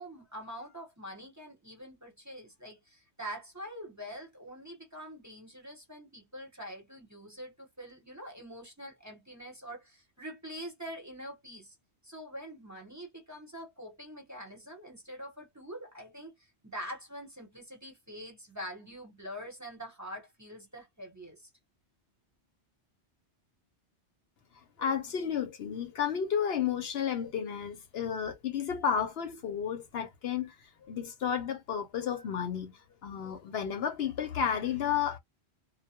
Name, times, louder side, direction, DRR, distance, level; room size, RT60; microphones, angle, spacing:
voice 1, 0.0-11.8 12.0-21.5, equal, 15° right, 1.0 m, -45 dB
voice 2, 24.5-35.2, left 8 dB, 70° left, 0.8 m, -32 dB
2.2 x 2.1 x 2.8 m
omnidirectional pair, 1.2 m